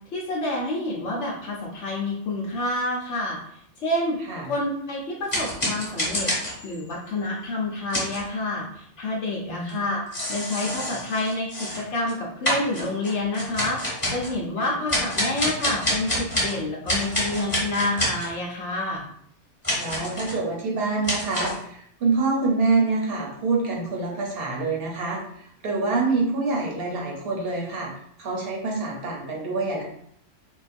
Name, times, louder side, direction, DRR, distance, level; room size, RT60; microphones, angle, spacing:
voice 1, 0.1-3.4 3.8-4.2 4.4-6.3 6.6-10.0 10.3-19.0, left 2 dB, 75° left, -3 dB, 0.9 m, -28 dB
sound 1, 5.3-6.9 7.9-8.2 9.7-9.8 10.1-12.1 12.4-14.4 14.9-16.6 16.9-18.3 19.6-20.4 21.0-21.6, equal, 15° left, 1.2 m, -27 dB
voice 2, 9.4-9.8 14.6-14.8 19.8-25.2 25.6-27.9 28.2-29.8, right 3 dB, 55° right, -2 dB, 1.0 m, -26 dB
3.8 x 2.4 x 2.5 m, 0.67 s
omnidirectional pair, 1.3 m